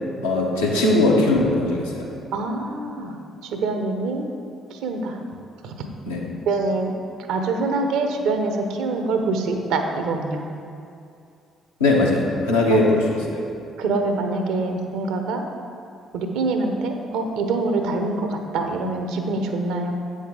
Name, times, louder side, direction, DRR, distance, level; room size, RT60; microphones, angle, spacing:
voice 1, 0.2-2.1 6.1-6.2 11.8-13.0 13.3-13.4, left 2 dB, 80° left, -4 dB, 1.1 m, -19 dB
voice 2, 2.3-4.3 4.7-5.7 6.5-6.9 7.3-10.4 12.7-12.8 13.8-15.4 16.1-19.9, right 3 dB, 60° right, 5 dB, 0.7 m, -25 dB
8.4 x 6.4 x 3.8 m, 2.5 s
figure-of-eight pair, 45°, 0 cm